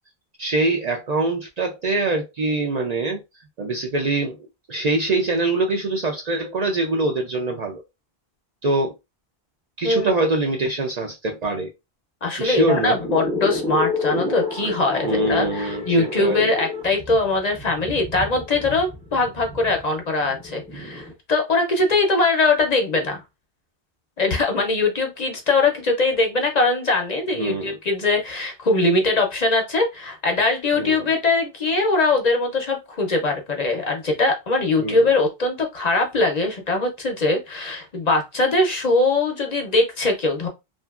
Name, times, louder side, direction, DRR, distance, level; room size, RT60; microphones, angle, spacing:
voice 1, 0.4-3.2 3.6-4.4 4.7-7.8 8.6-8.9 9.8-11.7 12.4-13.0 15.0-16.5 27.4-27.8 30.7-31.0 34.8-35.1, right 2 dB, 55° right, 0.5 m, -24 dB
voice 2, 12.2-23.2 24.2-40.5, left 3 dB, 45° left, 0.7 m, -21 dB
sound 1, 12.4-21.1, left 3 dB, 10° left, 0.4 m, -30 dB
2.8 x 2.5 x 2.3 m
omnidirectional pair, 1.1 m